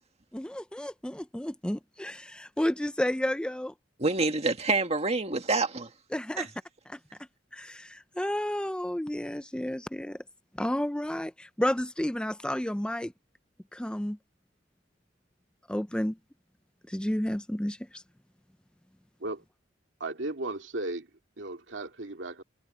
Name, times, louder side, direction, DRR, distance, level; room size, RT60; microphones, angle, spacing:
voice 1, 0.3-3.7 6.1-6.5 6.9-7.0 7.5-10.2 10.6-13.1 13.7-14.2 15.7-16.2 16.9-18.0, left 1 dB, 5° left, 0.5 m, -31 dB
voice 2, 4.0-5.9 6.4-6.5, right 3 dB, 35° right, 1.9 m, -27 dB
voice 3, 20.0-21.1 21.4-22.4, right 2 dB, 75° right, 2.3 m, -35 dB
head